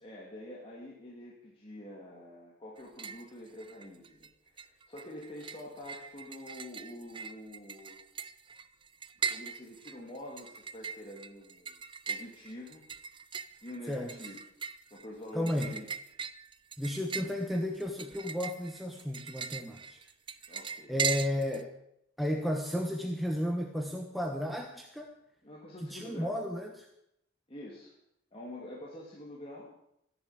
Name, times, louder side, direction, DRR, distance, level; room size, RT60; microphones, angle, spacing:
voice 1, 0.0-8.0 9.3-12.8 13.6-14.4 14.9-15.9 20.5-20.9 25.4-26.4 27.5-27.9 28.3-29.7, left 1 dB, 30° left, -4 dB, 2.7 m, -46 dB
sound 1, 2.8-3.3 3.6-4.3 4.6-21.6, right 6 dB, 25° right, 0.6 m, -40 dB
voice 2, 13.9-14.2 15.3-15.8 16.8-20.0 20.9-21.7 22.2-25.1 25.8-26.8, left 1 dB, ahead, 2 dB, 1.1 m, -33 dB
14.0 x 10.5 x 8.2 m, 0.78 s
head